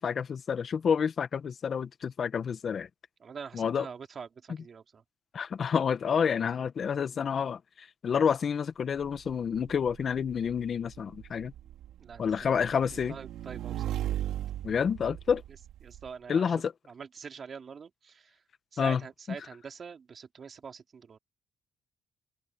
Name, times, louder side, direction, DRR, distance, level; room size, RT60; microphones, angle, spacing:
voice 1, 0.0-2.9 3.5-3.8 5.3-11.5 12.2-13.2 14.6-15.4 16.3-16.7 18.8-19.0, left 7 dB, 55° left, 1.5 m, -29 dB
voice 2, 3.2-5.0 12.0-12.5 13.1-14.0 15.8-16.6 16.9-18.4 18.7-21.2, right 6 dB, 50° right, 2.6 m, -45 dB
Motorcycle / Engine, 9.0-16.1, right 12 dB, 90° right, 4.4 m, -38 dB
cardioid pair, 80°, 0 cm